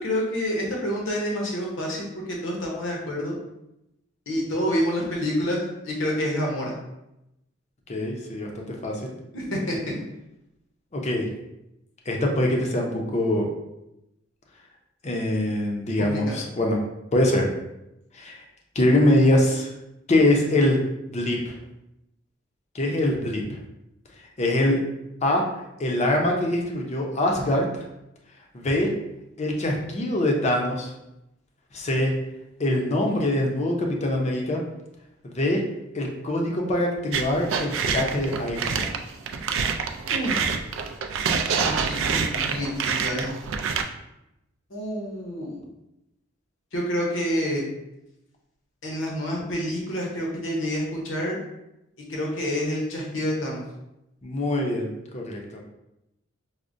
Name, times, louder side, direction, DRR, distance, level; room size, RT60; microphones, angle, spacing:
voice 1, 0.0-3.3 4.3-5.6 5.8-6.7 9.3-10.0 16.0-16.4 40.1-40.4 41.6-43.3 44.7-45.6 46.7-47.6 48.8-51.4 52.1-53.6, equal, 70° left, -2 dB, 0.9 m, -28 dB
voice 2, 7.9-9.0 10.9-11.3 12.1-13.5 15.0-16.8 17.1-17.5 18.1-18.4 18.7-19.7 20.1-20.8 21.1-21.6 22.7-23.4 24.4-24.8 25.2-25.5 25.8-27.8 28.5-28.9 29.4-30.9 31.7-32.1 32.6-34.6 35.2-35.6 35.9-39.0 54.2-55.4, left 1 dB, 35° left, 0 dB, 0.5 m, -23 dB
sound 1, 37.1-43.8, right 6 dB, 75° right, 0.3 m, -26 dB
4.8 x 2.1 x 2.5 m, 0.88 s
head